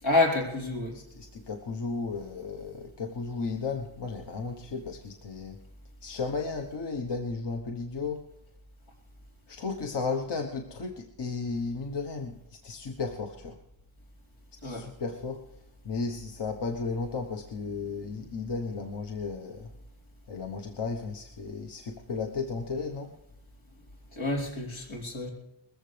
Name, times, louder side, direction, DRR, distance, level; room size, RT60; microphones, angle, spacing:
voice 1, 0.0-0.9 14.6-14.9 18.2-18.3 24.1-25.3, left 2 dB, 90° left, -2 dB, 4.6 m, -28 dB
voice 2, 0.9-5.6 6.0-8.3 9.5-13.6 14.6-19.7 20.3-23.2, left 4 dB, 60° left, 3 dB, 1.2 m, -34 dB
21.0 x 14.5 x 3.4 m, 0.89 s
wide cardioid pair, 125°, 46 cm